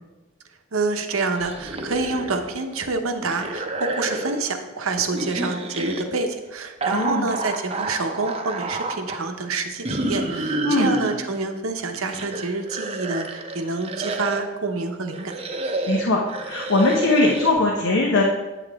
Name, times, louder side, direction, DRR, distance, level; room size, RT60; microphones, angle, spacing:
voice 1, 0.7-15.4, right 3 dB, 80° right, 6 dB, 0.9 m, -27 dB
sound 1, 1.4-2.5 2.8-4.5 5.1-6.0 6.8-9.2 9.9-11.2 11.8-14.5 15.1-17.5, right 2 dB, 30° right, 0.6 m, -29 dB
voice 2, 6.9-7.3 10.6-10.9 15.9-18.2, left 2 dB, 75° left, -2 dB, 1.0 m, -20 dB
9.0 x 7.1 x 3.6 m, 1.2 s
head